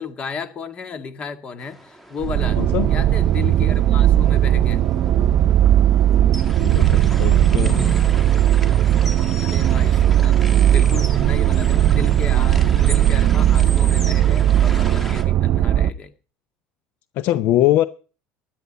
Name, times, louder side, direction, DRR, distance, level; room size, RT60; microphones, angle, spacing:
voice 1, 0.0-2.6 2.9-4.9 9.4-16.1, left 5 dB, 30° left, 1.9 m, -33 dB
sound 1, 1.6-15.2, equal, 5° left, 2.3 m, -38 dB
sound 2, 2.2-15.9, right 11 dB, 45° right, 0.8 m, -17 dB
voice 2, 2.6-2.9 6.6-8.0 17.1-17.9, left 13 dB, 55° left, 0.7 m, -21 dB
16.5 x 11.5 x 4.1 m
cardioid pair, 155°, 4 cm